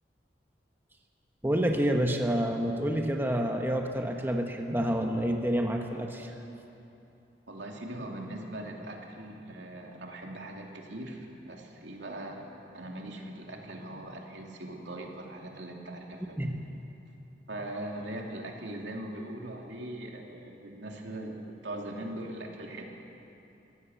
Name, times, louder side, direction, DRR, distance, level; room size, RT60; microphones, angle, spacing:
voice 1, 1.4-6.3 16.4-16.6, equal, 10° right, 2 dB, 1.3 m, -28 dB
voice 2, 7.5-12.5 12.7-16.4 17.5-22.9, right 1 dB, 85° right, 0 dB, 2.8 m, -40 dB
24.0 x 16.5 x 7.1 m, 2.9 s
head